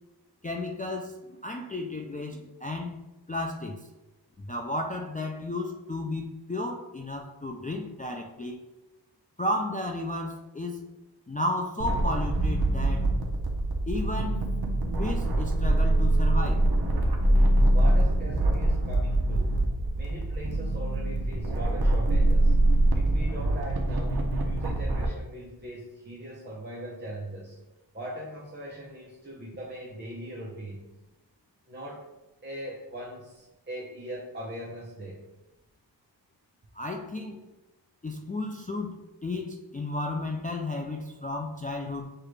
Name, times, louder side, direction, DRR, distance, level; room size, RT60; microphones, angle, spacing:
voice 1, 0.4-3.0 3.3-3.9 4.4-8.6 9.4-10.8 11.3-13.1 13.9-14.5 15.0-16.7 36.7-37.4 38.0-42.1, left 2 dB, 20° left, 1 dB, 0.3 m, -33 dB
sound 1, 11.8-25.1, right 1 dB, 55° right, 0.8 m, -24 dB
voice 2, 17.7-19.6 19.9-22.6 22.9-27.6 27.9-30.9 31.7-32.1 32.4-35.3, right 1 dB, 25° right, -4 dB, 0.7 m, -40 dB
6.6 x 2.4 x 3.2 m, 1.0 s
wide cardioid pair, 100°, 44 cm